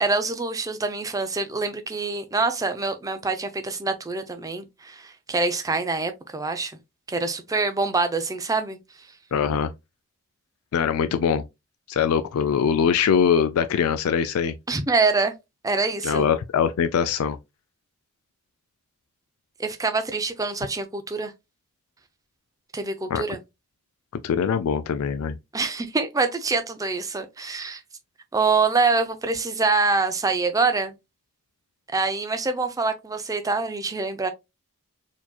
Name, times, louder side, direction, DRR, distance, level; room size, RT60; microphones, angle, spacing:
voice 1, 0.0-6.7 7.1-8.8 14.7-15.3 15.6-16.3 19.6-21.3 22.7-23.4 25.5-27.8 28.3-30.9 31.9-34.3, right 3 dB, 15° right, 0.5 m, -25 dB
voice 2, 9.3-9.7 10.7-11.4 11.9-14.5 16.0-17.4 23.1-23.2 24.2-25.3, left 7 dB, 65° left, 0.3 m, -22 dB
4.4 x 2.9 x 2.2 m
head